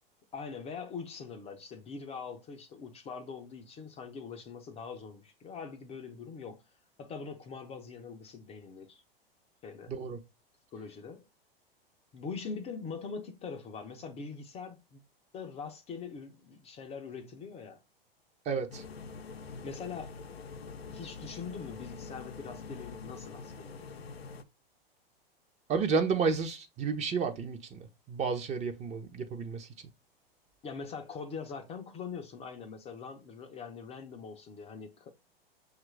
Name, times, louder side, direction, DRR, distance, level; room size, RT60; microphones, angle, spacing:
voice 1, 0.3-6.6 7.0-9.0 9.6-9.9 10.7-11.2 12.1-15.0 15.3-17.8 19.6-20.1 20.9-24.1 30.6-35.1, left 5 dB, 20° left, 0.5 m, -43 dB
voice 2, 9.9-10.2 18.5-18.8 25.7-29.7, right 5 dB, 25° right, 0.6 m, -31 dB
sound 1, 18.7-24.4, left 4 dB, 85° left, 0.6 m, -45 dB
5.9 x 2.4 x 3.2 m
figure-of-eight pair, 100°, 30 cm